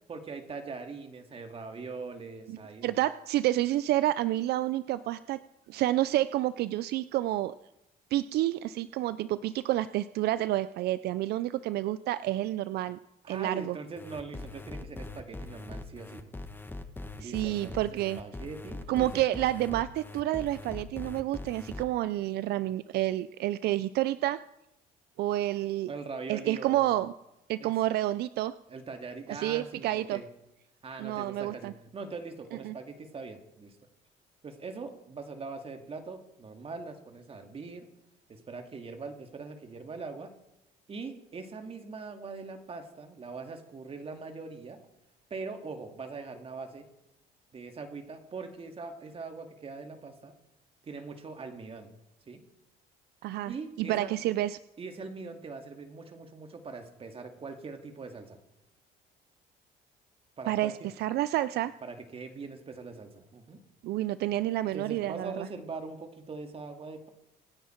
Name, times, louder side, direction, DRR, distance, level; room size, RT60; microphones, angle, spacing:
voice 1, 0.1-2.9 13.2-16.3 17.2-19.2 25.9-26.9 27.6-27.7 28.7-30.3 30.8-33.8 34.4-37.9 38.3-40.3 40.9-44.8 45.3-46.9 47.5-50.3 50.8-51.9 52.3-52.4 53.5-54.1 54.8-58.4 60.4-60.9 61.8-63.6 64.7-67.1, right 4 dB, 35° right, 5 dB, 2.2 m, -42 dB
voice 2, 2.5-5.4 5.7-7.5 8.1-13.0 13.3-13.8 17.2-18.2 18.9-24.4 25.2-25.9 26.3-27.1 27.5-28.5 29.3-30.2 31.0-31.7 32.6-32.8 53.2-54.6 60.5-61.7 63.8-65.5, right 14 dB, 70° right, 15 dB, 0.5 m, -29 dB
sound 1, 14.0-21.8, left 2 dB, 10° left, 1.3 m, -41 dB
26.0 x 9.4 x 4.5 m, 0.90 s
cardioid pair, 110°, 17 cm